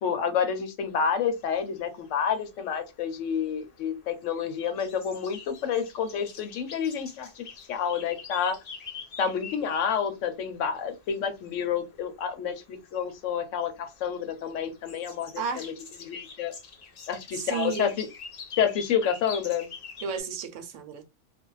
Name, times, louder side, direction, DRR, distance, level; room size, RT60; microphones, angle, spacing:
voice 1, 0.0-8.6 9.2-15.7 16.0-16.5 17.1-18.1 18.6-19.7, left 7 dB, 90° left, 0.9 m, -29 dB
sound 1, 0.8-20.2, left 6 dB, 50° left, 0.5 m, -46 dB
voice 2, 15.4-15.7 17.3-18.0 20.0-21.0, right 6 dB, 85° right, 1.0 m, -33 dB
2.4 x 2.2 x 3.0 m
omnidirectional pair, 1.2 m